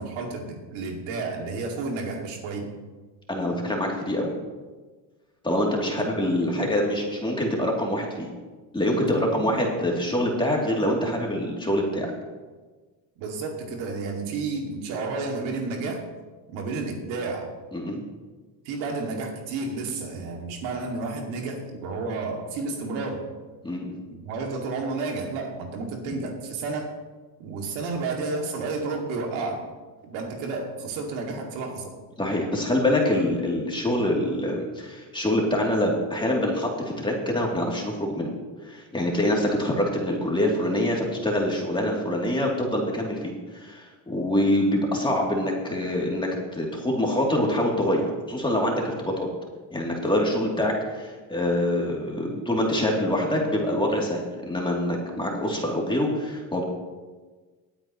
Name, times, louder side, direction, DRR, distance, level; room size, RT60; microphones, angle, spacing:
voice 1, 0.0-2.7 5.9-6.1 6.6-6.7 9.0-9.5 13.2-16.0 16.5-17.5 18.7-23.3 24.1-26.9 27.4-29.6 30.0-31.9, right 3 dB, 70° right, 2 dB, 2.3 m, -31 dB
voice 2, 3.3-4.3 5.4-8.3 8.7-12.1 17.7-18.0 23.6-24.0 32.2-38.3 38.6-49.3 49.7-56.6, left 1 dB, 10° left, -1 dB, 2.7 m, -25 dB
19.5 x 8.9 x 3.0 m, 1.3 s
supercardioid pair, 100°, 47 cm